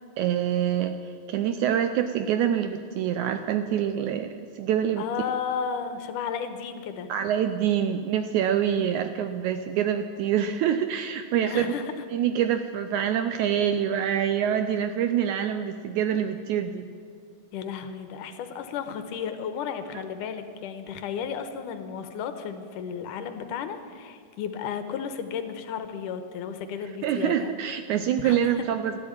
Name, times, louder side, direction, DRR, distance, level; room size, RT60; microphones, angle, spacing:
voice 1, 0.2-1.0 1.3-5.1 7.1-11.8 12.1-16.8 19.9-20.0 27.0-29.0, right 9 dB, 80° right, 9 dB, 1.7 m, -26 dB
voice 2, 5.0-7.1 11.4-12.0 17.5-27.5 28.2-28.7, left 7 dB, 75° left, 9 dB, 2.3 m, -33 dB
13.0 x 12.5 x 8.7 m, 2.3 s
omnidirectional pair, 3.9 m